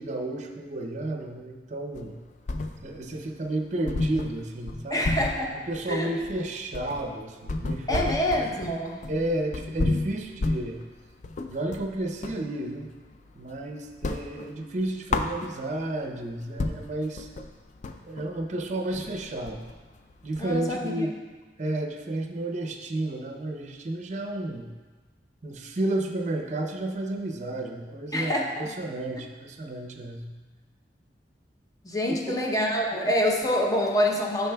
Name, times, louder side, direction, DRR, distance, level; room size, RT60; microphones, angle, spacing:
voice 1, 0.0-2.2 2.8-5.1 5.5-8.3 9.1-10.8 11.5-12.9 13.3-17.3 18.1-19.6 20.2-21.1 21.6-24.7 25.4-30.3 32.3-32.4, right 1 dB, 40° right, 4 dB, 0.6 m, -32 dB
sound 1, 1.9-3.1 3.4-3.5 3.9-12.5 12.8-13.6 13.9-15.9 16.3-16.4 16.6-20.7, left 2 dB, 45° left, 0.3 m, -32 dB
voice 2, 4.9-5.5 5.9-6.1 7.9-9.1 20.4-21.1 28.1-28.7 31.8-34.5, left 1 dB, 20° left, 0 dB, 0.7 m, -26 dB
8.9 x 5.7 x 2.2 m, 1.4 s
head